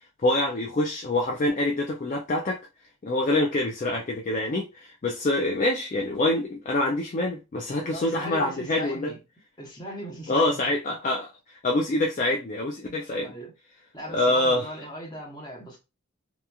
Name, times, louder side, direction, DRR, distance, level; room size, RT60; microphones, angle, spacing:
voice 1, 0.2-2.6 3.0-9.1 10.3-13.3 14.1-14.7, left 1 dB, 35° left, 0.3 m, -25 dB
voice 2, 7.8-9.2 9.6-10.7 12.9-13.5 13.9-15.8, right 1 dB, 20° left, 0.9 m, -39 dB
2.8 x 2.5 x 2.2 m
head